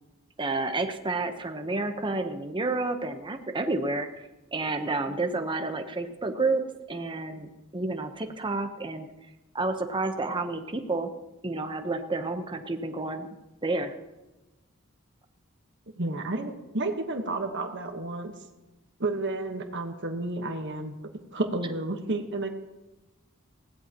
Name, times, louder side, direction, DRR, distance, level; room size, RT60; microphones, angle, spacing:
voice 1, 0.4-9.1 9.5-11.1 11.4-13.3 13.6-13.9, right 3 dB, 25° right, 6 dB, 0.9 m, -30 dB
voice 2, 16.0-18.3 19.0-21.0 21.3-22.5, right 2 dB, 60° right, 5 dB, 1.3 m, -31 dB
20.0 x 16.0 x 3.0 m, 1.0 s
head